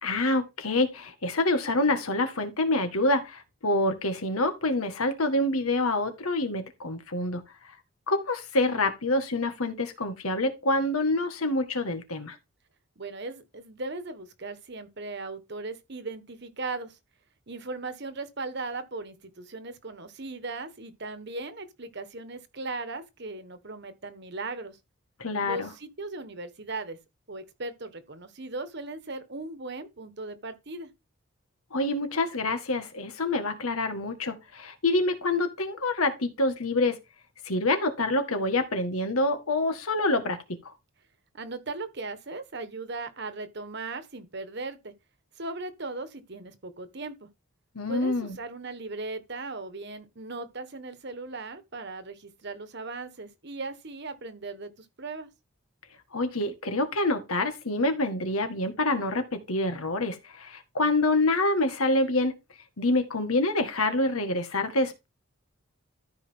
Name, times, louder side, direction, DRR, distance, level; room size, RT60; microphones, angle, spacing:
voice 1, 0.0-7.4 8.1-12.4 25.2-25.7 31.7-37.0 37.5-40.4 40.7-40.8 47.8-48.4 56.1-62.3 62.8-65.1, left 2 dB, 85° left, 1.7 m, -26 dB
voice 2, 13.0-17.0 17.5-24.8 25.4-27.0 27.3-30.9 41.3-44.9 45.4-47.3 47.9-55.3, right 3 dB, 50° right, 1.3 m, -38 dB
13.5 x 5.1 x 3.7 m
head